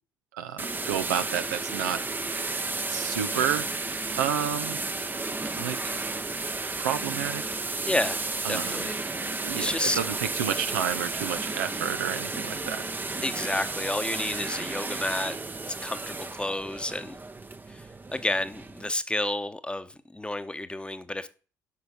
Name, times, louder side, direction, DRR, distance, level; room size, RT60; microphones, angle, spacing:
voice 1, 0.3-2.0 2.9-3.7 4.2-4.8 5.6-6.0 6.8-7.4 8.4-8.8 9.4-12.9, right 9 dB, 80° right, 0.7 m, -30 dB
sound 1, 0.6-18.9, right 3 dB, 20° right, 0.8 m, -33 dB
voice 2, 7.8-8.2 8.5-9.2 9.6-10.0 13.2-15.4 15.8-17.2 17.7-17.8 18.1-21.3, left 1 dB, 10° left, 1.0 m, -30 dB
8.3 x 5.7 x 6.4 m
figure-of-eight pair, 50°, 9 cm